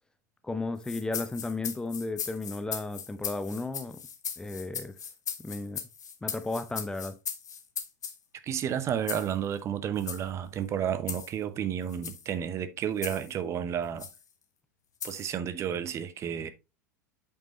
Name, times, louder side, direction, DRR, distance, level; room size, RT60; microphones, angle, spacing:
voice 1, 0.4-4.0 4.4-4.9 5.4-5.8 6.2-7.2, left 2 dB, 10° left, 0.6 m, -34 dB
sound 1, 0.8-8.2 9.1-9.3 10.0-10.2 11.1-11.3 11.9-12.3 13.0-13.3 14.0-14.2 15.0-15.3, left 7 dB, 70° left, 1.1 m, -38 dB
voice 2, 8.4-14.1 15.0-16.5, right 9 dB, 30° right, 0.8 m, -31 dB
8.4 x 5.3 x 2.9 m
figure-of-eight pair, 85°, 10 cm